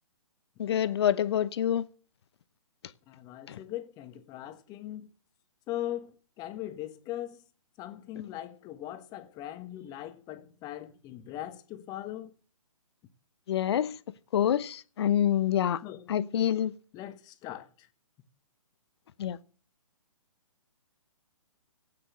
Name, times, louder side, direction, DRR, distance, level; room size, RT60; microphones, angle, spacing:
voice 1, 0.6-1.8 3.5-3.6 13.5-13.9 14.3-15.8 16.1-16.7 19.2-19.4, left 10 dB, 50° left, 0.9 m, -26 dB
voice 2, 3.1-5.1 5.7-7.4 7.8-12.3 15.8-16.1 16.9-17.9, left 13 dB, 20° left, 1.3 m, -40 dB
14.0 x 9.0 x 7.9 m
figure-of-eight pair, 130°, 18 cm